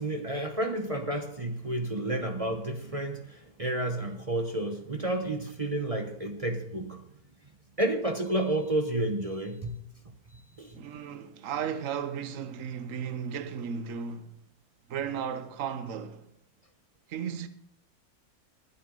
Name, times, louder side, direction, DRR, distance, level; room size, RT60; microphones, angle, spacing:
voice 1, 0.0-7.0 7.8-9.8 10.6-10.7, right 1 dB, 30° right, 0.8 m, -31 dB
voice 2, 10.7-14.4 14.9-16.3 17.1-17.5, right 7 dB, 60° right, 1.3 m, -35 dB
21.5 x 8.4 x 3.8 m
omnidirectional pair, 1.7 m